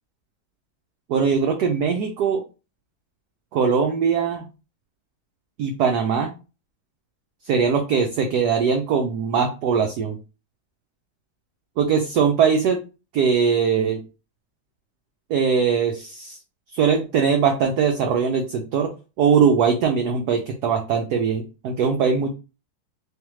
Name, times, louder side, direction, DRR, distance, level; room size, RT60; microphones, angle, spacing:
voice 1, 1.1-2.4 3.5-4.4 5.6-6.3 7.5-10.2 11.8-12.8 13.1-14.0 15.3-16.4 16.7-18.9 19.2-22.3, right 6 dB, 70° right, 3 dB, 0.9 m, -21 dB
3.5 x 3.2 x 3.0 m, 0.31 s
omnidirectional pair, 2.2 m